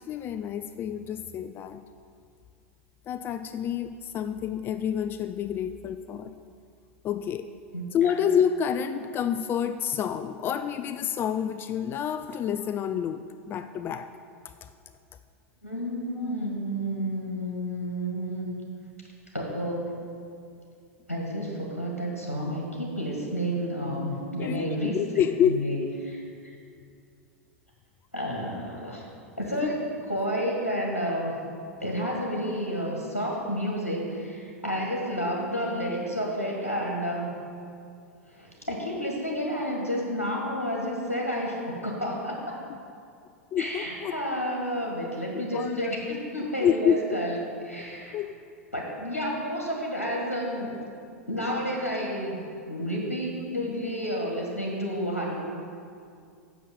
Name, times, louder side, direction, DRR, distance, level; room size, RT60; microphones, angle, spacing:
voice 1, 0.0-1.8 3.1-6.3 7.0-7.5 7.9-14.1 14.4-14.7 16.2-16.4 24.4-25.8 29.6-29.7 43.5-44.2 45.5-46.0 46.6-47.0 48.1-48.3, left 8 dB, 30° left, 11 dB, 0.3 m, -28 dB
voice 2, 15.6-18.5 19.3-20.0 21.1-25.0 25.4-25.8 26.0-26.6 28.1-29.0 29.4-29.8 30.1-31.3 31.8-37.3 38.3-42.6 43.6-47.4 47.6-48.2 48.7-50.7 51.3-55.4, equal, 85° left, -2 dB, 1.8 m, -30 dB
8.5 x 6.9 x 7.0 m, 2.3 s
figure-of-eight pair, 90°, 8 cm